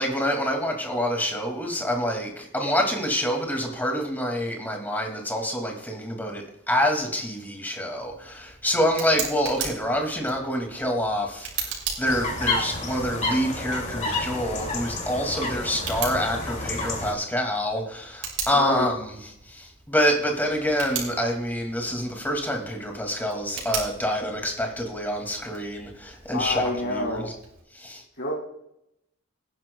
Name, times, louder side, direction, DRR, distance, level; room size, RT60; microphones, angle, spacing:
voice 1, 0.0-19.2 19.4-27.3 27.7-28.0, equal, 10° left, 2 dB, 2.2 m, -27 dB
Tick, 7.9-27.6, right 6 dB, 80° right, 4.0 m, -39 dB
sound 1, 12.0-17.1, left 2 dB, 35° left, 2.4 m, -30 dB
voice 2, 18.5-18.9 26.3-27.3 28.2-28.3, left 2 dB, 60° left, -2 dB, 2.1 m, -28 dB
18.5 x 10.5 x 2.3 m, 0.77 s
head